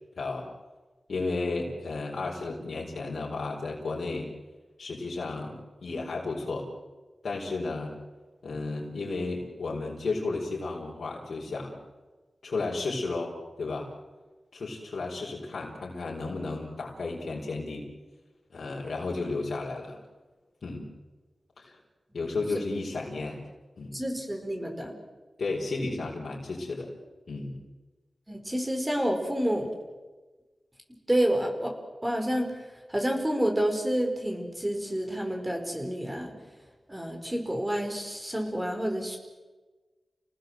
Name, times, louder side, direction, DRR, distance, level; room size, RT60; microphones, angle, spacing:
voice 1, 0.2-0.5 1.1-4.3 4.8-6.7 7.2-7.9 8.4-11.7 12.4-13.9 14.5-17.9 18.5-20.0 20.6-20.9 21.6-21.7 22.1-23.4 23.8-24.0 25.4-26.9 27.3-27.6, left 3 dB, 80° left, -4 dB, 4.5 m, -33 dB
voice 2, 23.9-24.9 28.3-29.7 31.1-31.7 32.0-32.5 32.9-36.3 36.9-39.2, equal, 15° right, 3 dB, 5.5 m, -29 dB
29.5 x 19.0 x 7.8 m, 1.2 s
wide cardioid pair, 80°, 0 cm